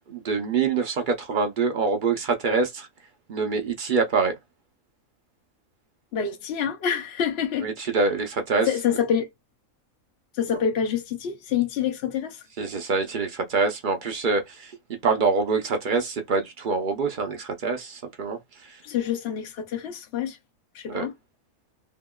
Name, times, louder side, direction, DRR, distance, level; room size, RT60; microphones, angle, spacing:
voice 1, 0.0-2.9 3.3-4.4 7.6-8.7 12.6-14.7 15.0-18.8 20.9-21.1, right 4 dB, 60° right, 0.5 m, -25 dB
voice 2, 6.1-7.7 8.6-9.3 10.3-12.5 18.8-20.4 20.7-21.1, left 8 dB, 60° left, 0.7 m, -27 dB
2.8 x 2.8 x 2.2 m
omnidirectional pair, 1.5 m